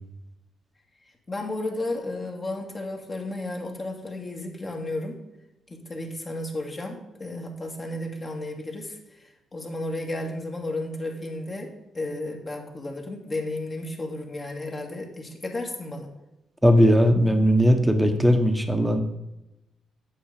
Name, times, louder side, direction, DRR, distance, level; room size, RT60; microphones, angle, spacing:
voice 1, 1.3-5.2 5.7-16.1, left 2 dB, 30° left, 1 dB, 2.1 m, -33 dB
voice 2, 16.6-19.0, equal, ahead, 6 dB, 1.3 m, -18 dB
8.7 x 6.5 x 5.0 m, 0.95 s
cardioid pair, 90°, 0 cm